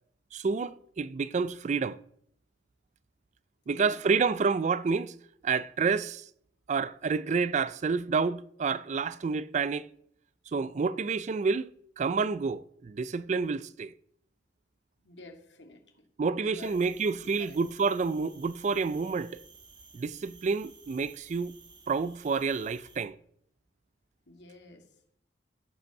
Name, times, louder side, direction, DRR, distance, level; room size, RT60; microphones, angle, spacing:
voice 1, 0.3-2.0 3.7-5.1 5.4-6.3 6.7-9.9 10.5-11.7 12.0-13.9 16.2-19.4 19.9-21.6 21.9-23.2, right 5 dB, 40° right, 0.3 m, -29 dB
voice 2, 3.7-4.0 15.0-15.8 16.4-17.6 24.3-24.9, left 3 dB, 65° left, 2.1 m, -49 dB
sound 1, 16.6-23.0, right 5 dB, 25° right, 1.3 m, -54 dB
15.0 x 5.3 x 6.4 m
head